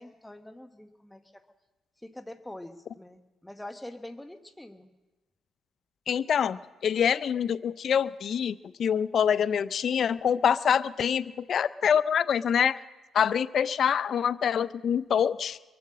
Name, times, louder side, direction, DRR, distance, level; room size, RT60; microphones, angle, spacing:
voice 1, 0.0-1.4 2.0-4.9, left 1 dB, 5° left, 7 dB, 1.1 m, -44 dB
voice 2, 6.1-12.8 13.1-15.6, left 8 dB, 60° left, 16 dB, 0.4 m, -25 dB
23.0 x 7.7 x 7.5 m, 1.1 s
cardioid pair, 75°, 0 cm